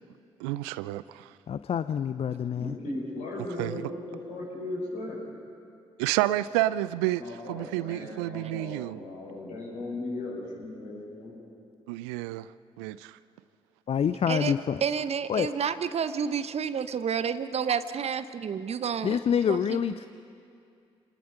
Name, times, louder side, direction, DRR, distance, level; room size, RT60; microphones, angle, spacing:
voice 1, 0.4-1.3 3.6-3.8 6.0-9.0 11.9-12.5 12.8-13.0, right 16 dB, 75° right, 17 dB, 0.4 m, -29 dB
voice 2, 1.5-2.8 13.9-14.8 15.3-15.5 19.0-20.1, left 8 dB, 45° left, 12 dB, 0.5 m, -27 dB
voice 3, 2.5-5.2 7.2-11.4, left 2 dB, 65° left, -4 dB, 6.6 m, -37 dB
voice 4, 14.8-19.2 19.5-19.9, right 7 dB, 45° right, 13 dB, 0.8 m, -30 dB
28.0 x 20.0 x 5.7 m, 2.4 s
figure-of-eight pair, 40°, 15 cm